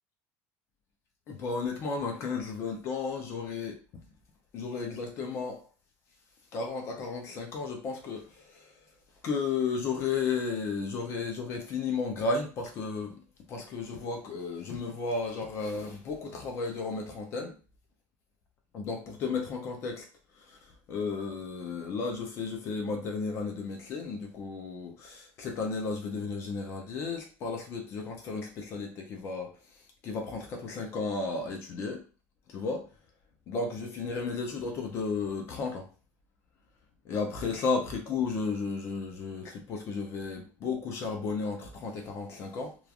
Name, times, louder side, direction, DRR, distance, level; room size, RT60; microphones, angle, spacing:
voice 1, 1.3-3.8 4.5-5.6 6.5-8.7 9.2-13.2 13.5-17.5 18.7-20.1 20.5-20.6 20.9-29.5 30.0-32.0 32.5-32.9 33.5-35.9 37.0-42.8, left 4 dB, 50° left, 0.6 m, -33 dB
3.0 x 2.4 x 2.5 m
cardioid pair, 145°, 6 cm